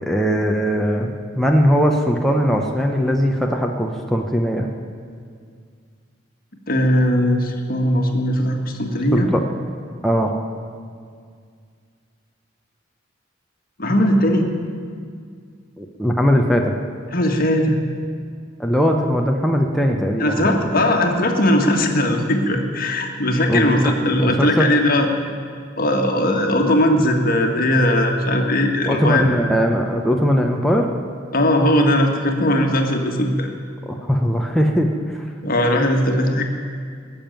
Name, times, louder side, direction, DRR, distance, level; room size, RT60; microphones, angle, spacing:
voice 1, 0.0-4.7 9.1-9.4 10.0-10.3 15.8-16.7 18.6-20.8 23.5-23.9 24.2-24.7 28.9-30.9 33.9-35.3, equal, ahead, 0 dB, 0.9 m, -20 dB
voice 2, 6.7-9.3 13.8-14.5 17.1-17.7 20.2-25.1 25.8-29.3 31.3-33.5 35.4-36.5, left 1 dB, 50° left, 3 dB, 1.7 m, -19 dB
20.0 x 7.1 x 9.1 m, 2.1 s
head